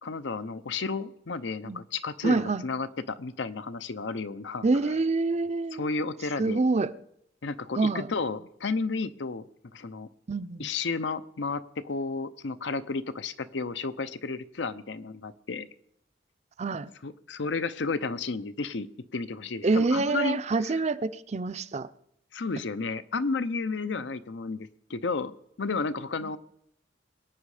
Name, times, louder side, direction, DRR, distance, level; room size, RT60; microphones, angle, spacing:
voice 1, 0.0-4.6 5.7-6.6 7.4-10.1 10.6-15.7 17.0-20.4 22.3-26.4, left 4 dB, 75° left, 0.7 m, -32 dB
voice 2, 2.2-2.6 4.6-5.9 6.4-6.9 7.8-8.1 10.3-10.7 16.6-16.9 19.6-21.9 26.2-26.3, right 3 dB, 35° right, 0.5 m, -26 dB
22.5 x 9.1 x 4.9 m
head